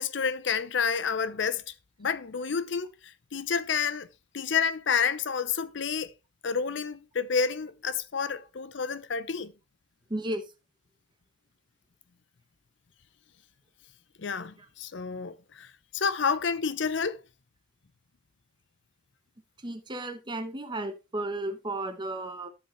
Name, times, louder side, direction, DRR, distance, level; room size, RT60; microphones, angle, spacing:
voice 1, 0.0-1.6 2.0-2.9 3.3-4.1 4.3-6.1 6.4-9.5 14.2-15.7 15.9-17.2, left 6 dB, 65° left, 0.6 m, -29 dB
voice 2, 10.1-10.4 14.6-14.7 19.6-22.5, right 1 dB, 25° right, 1.0 m, -34 dB
13.5 x 5.0 x 3.1 m
head